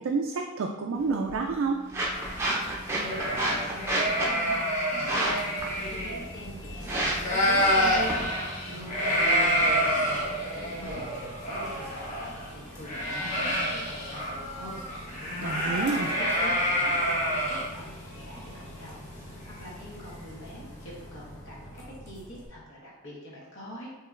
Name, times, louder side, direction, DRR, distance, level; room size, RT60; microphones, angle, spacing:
voice 1, 0.0-1.8 15.4-16.1, right 4 dB, 60° right, 2 dB, 0.3 m, -29 dB
sound 1, 0.9-10.9, right 1 dB, 10° right, 0.6 m, -33 dB
sound 2, 2.1-6.9 7.1-20.0, equal, 35° left, 1.1 m, -28 dB
voice 2, 2.9-6.9 7.3-8.2 8.6-17.9 18.1-19.1 19.4-23.9, equal, 60° left, -5 dB, 1.3 m, -44 dB
Bus, 5.6-22.5, equal, 15° left, 0.9 m, -46 dB
7.2 x 2.9 x 2.4 m, 1.2 s
head